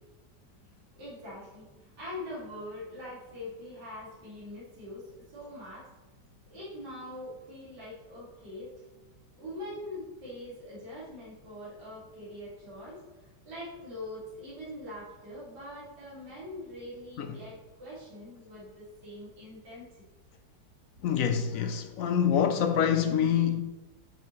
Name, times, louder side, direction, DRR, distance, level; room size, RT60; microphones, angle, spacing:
voice 1, 0.4-9.0 9.3-19.9, left 1 dB, 70° right, 3.1 m, -43 dB
voice 2, 21.0-23.6, left 8 dB, 70° left, 0.8 m, -26 dB
10.5 x 5.8 x 3.2 m
omnidirectional pair, 1.8 m